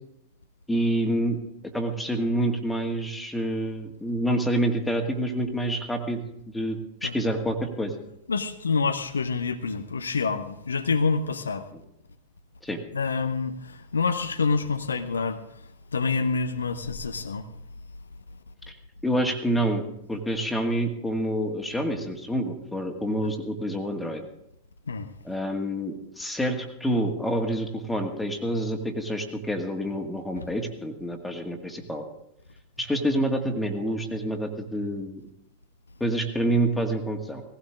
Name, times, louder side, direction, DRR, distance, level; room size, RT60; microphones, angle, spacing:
voice 1, 0.7-1.4 1.7-6.2 6.5-8.0 12.6-12.8 18.7-18.8 19.0-19.8 20.1-24.3 25.2-32.0 32.8-35.2 36.0-37.4, right 1 dB, 5° left, 3 dB, 2.0 m, -27 dB
voice 2, 8.3-11.7 12.9-15.4 15.9-17.5 24.9-25.1, left 4 dB, 75° left, 8 dB, 0.8 m, -27 dB
18.0 x 16.0 x 3.7 m, 0.81 s
figure-of-eight pair, 90°, 0 cm